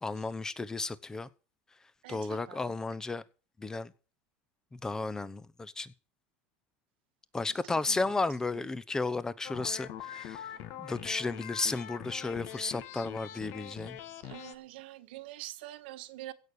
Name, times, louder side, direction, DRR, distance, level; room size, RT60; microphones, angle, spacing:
voice 1, 0.0-1.3 2.1-3.2 3.6-3.9 4.7-5.9 7.3-10.5 10.8-14.0, left 3 dB, 10° left, 0.9 m, -33 dB
voice 2, 2.0-2.6 7.9-8.0 14.3-16.3, right 15 dB, 85° right, 1.6 m, -45 dB
sound 1, 9.4-14.6, left 11 dB, 55° left, 1.7 m, -43 dB
16.0 x 6.5 x 8.5 m
supercardioid pair, 145°, 5 cm